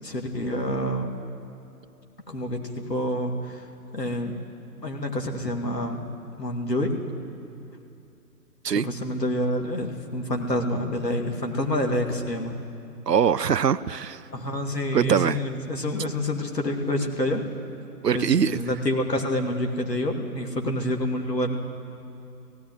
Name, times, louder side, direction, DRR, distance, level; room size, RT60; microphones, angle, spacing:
voice 1, 0.0-1.1 2.3-3.6 3.9-4.4 4.8-6.0 6.4-6.9 8.7-12.6 14.3-17.4 18.1-21.6, left 1 dB, 90° left, 2 dB, 2.7 m, -27 dB
voice 2, 13.1-14.2 14.9-15.4 18.0-18.6, right 7 dB, 85° right, 12 dB, 0.6 m, -22 dB
17.0 x 16.5 x 9.5 m, 2.7 s
figure-of-eight pair, 135°, 48 cm